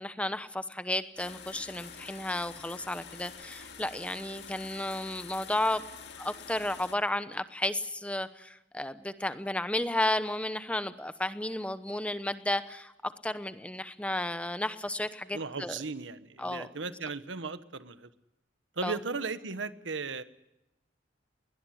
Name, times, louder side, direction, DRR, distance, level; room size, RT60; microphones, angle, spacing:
voice 1, 0.0-5.8 6.2-15.8 16.4-16.7 18.8-19.0, left 1 dB, 5° left, 12 dB, 0.9 m, -33 dB
sound 1, 1.2-6.9, left 6 dB, 65° left, 2.2 m, -47 dB
voice 2, 15.3-18.1 18.8-20.2, right 4 dB, 90° right, 13 dB, 1.2 m, -36 dB
21.5 x 19.0 x 10.0 m, 0.90 s
head